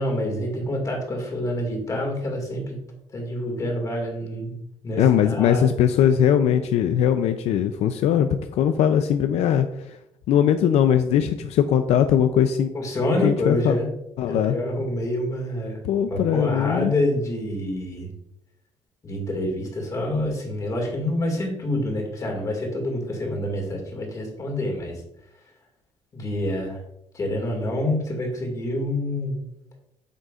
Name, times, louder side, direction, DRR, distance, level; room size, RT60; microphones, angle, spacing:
voice 1, 0.0-2.8 3.1-4.6 4.8-5.7 12.7-13.9 14.3-15.8 16.1-18.1 19.0-25.0 26.1-26.8 27.1-29.4, left 1 dB, 30° left, 1 dB, 2.1 m, -27 dB
voice 2, 5.0-10.0 10.3-12.7 13.2-13.8 14.2-14.5 15.8-16.9, left 9 dB, 75° left, 9 dB, 0.4 m, -20 dB
9.1 x 6.4 x 2.4 m, 0.82 s
cardioid pair, 150°, 11 cm